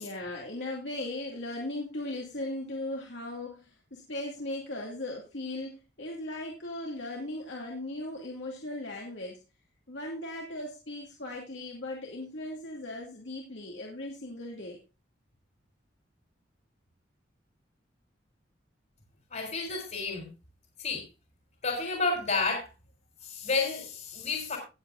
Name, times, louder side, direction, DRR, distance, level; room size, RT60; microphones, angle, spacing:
voice 1, 0.0-9.4 9.9-14.8, left 1 dB, 75° left, -1 dB, 2.5 m, -38 dB
voice 2, 19.3-20.3 20.8-21.1 21.6-22.7 23.2-24.6, left 4 dB, 45° left, 2 dB, 3.5 m, -30 dB
18.5 x 7.7 x 2.6 m, 0.29 s
head